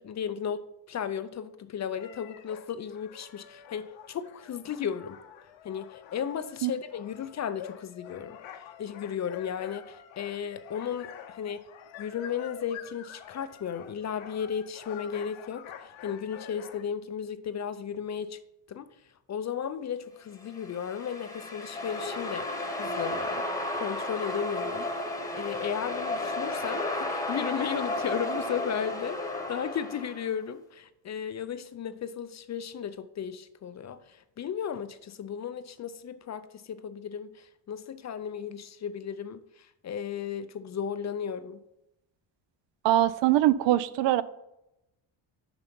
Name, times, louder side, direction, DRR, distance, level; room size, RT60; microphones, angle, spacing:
voice 1, 0.0-5.2 5.6-8.4 8.8-11.7 12.0-18.4 18.7-18.9 19.3-22.5 22.8-23.5 23.7-41.6, left 8 dB, 40° left, 0.4 m, -35 dB
sound 1, 2.0-16.8, left 9 dB, 75° left, 0.9 m, -47 dB
sound 2, 20.5-30.3, left 2 dB, 5° left, 1.1 m, -33 dB
voice 2, 42.8-44.2, right 13 dB, 65° right, 0.5 m, -22 dB
5.8 x 5.7 x 5.3 m
cardioid pair, 110°, 47 cm